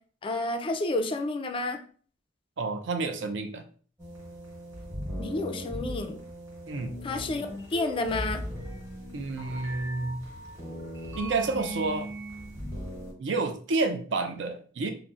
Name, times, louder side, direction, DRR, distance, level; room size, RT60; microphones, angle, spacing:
voice 1, 0.2-1.8 5.2-6.2 7.0-8.4, left 2 dB, 30° left, 6 dB, 0.3 m, -30 dB
voice 2, 2.6-3.7 6.7-6.9 9.1-10.2 11.1-12.1 13.2-14.9, right 3 dB, 70° right, 6 dB, 0.4 m, -29 dB
sound 1, 4.0-13.1, equal, 15° right, 0.9 m, -38 dB
3.8 x 2.0 x 2.3 m, 0.42 s
head